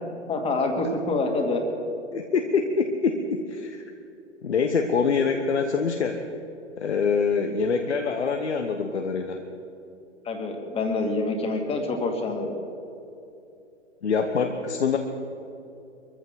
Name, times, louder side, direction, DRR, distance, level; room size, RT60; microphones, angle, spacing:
voice 1, 0.3-1.6 10.2-12.6, left 3 dB, 15° left, 3 dB, 2.3 m, -26 dB
voice 2, 2.1-3.8 4.4-6.2 6.8-9.4 14.0-15.0, left 5 dB, 65° left, 5 dB, 1.2 m, -25 dB
24.0 x 14.5 x 3.9 m, 2.8 s
figure-of-eight pair, 110°, 37 cm